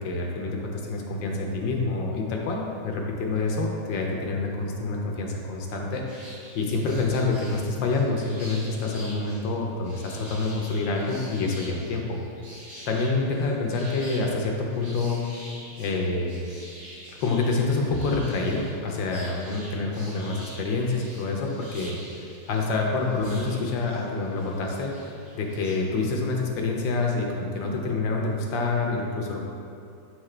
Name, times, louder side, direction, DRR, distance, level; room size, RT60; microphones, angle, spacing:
voice 1, 0.0-12.2 12.9-15.4 15.8-16.4 17.1-29.4, left 3 dB, 70° left, 0 dB, 1.3 m, -27 dB
sound 1, 6.1-25.7, equal, 45° right, 1.7 m, -46 dB
7.7 x 4.8 x 3.2 m, 2.5 s
omnidirectional pair, 2.3 m